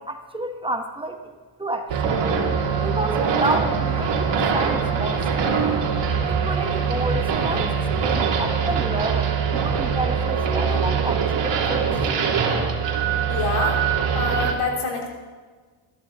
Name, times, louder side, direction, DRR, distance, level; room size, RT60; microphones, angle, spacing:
voice 1, 0.0-2.2 2.8-5.8 6.3-7.7 8.0-11.9, right 2 dB, 10° right, 5 dB, 1.1 m, -30 dB
sound 1, 1.9-14.5, right 6 dB, 60° right, 3.1 m, -23 dB
voice 2, 13.3-13.8 14.1-15.1, left 4 dB, 80° left, 0 dB, 3.7 m, -26 dB
21.0 x 14.5 x 4.1 m, 1.4 s
cardioid pair, 125°, 50 cm